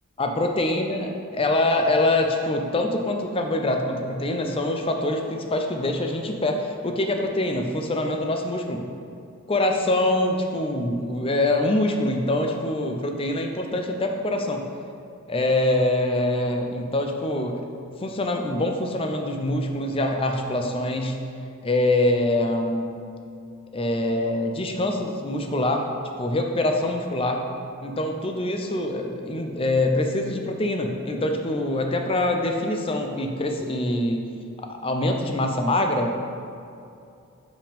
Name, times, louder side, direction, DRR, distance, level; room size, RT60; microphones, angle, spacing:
voice 1, 0.2-8.9 9.5-14.7 15.3-17.7 18.0-21.2 21.6-23.0 23.7-27.5 27.8-34.3 34.6-36.2, left 1 dB, 25° left, 3 dB, 0.5 m, -24 dB
5.3 x 5.0 x 5.2 m, 2.5 s
head